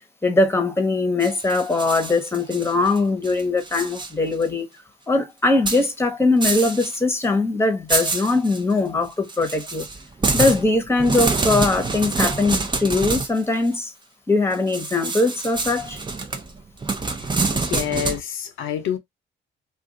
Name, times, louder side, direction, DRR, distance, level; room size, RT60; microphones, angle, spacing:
voice 1, 0.2-4.7 5.1-9.9 10.3-13.9 14.3-16.0, left 3 dB, 10° left, 1.0 m, -21 dB
sound 1, 1.2-3.0 3.2-4.1 4.4-4.5 5.6-5.8 6.4-7.0 7.2-7.3 7.9-8.6 9.3-13.4 14.7-18.2, right 3 dB, 25° right, 0.7 m, -26 dB
voice 2, 17.5-19.0, left 9 dB, 80° left, 0.7 m, -27 dB
2.5 x 2.4 x 3.7 m
cardioid pair, 90°, 20 cm